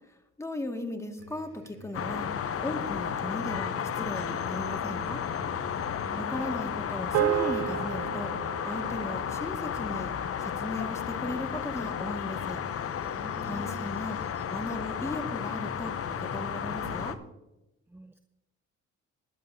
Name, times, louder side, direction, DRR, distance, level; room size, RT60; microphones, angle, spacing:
voice 1, 0.4-5.2 6.2-12.6 13.4-14.2 14.5-17.2, left 1 dB, 10° left, 4 dB, 2.0 m, -37 dB
sound 1, 1.2-17.2, equal, 40° right, 3.4 m, -47 dB
sound 2, 1.9-17.2, left 8 dB, 50° left, 0.8 m, -33 dB
voice 2, 6.0-6.4 13.2-13.9 17.9-18.2, right 1 dB, 5° right, 8 dB, 0.7 m, -45 dB
sound 3, 7.1-11.7, right 13 dB, 55° right, 0.6 m, -34 dB
21.0 x 11.0 x 2.8 m, 0.95 s
cardioid pair, 90°, 30 cm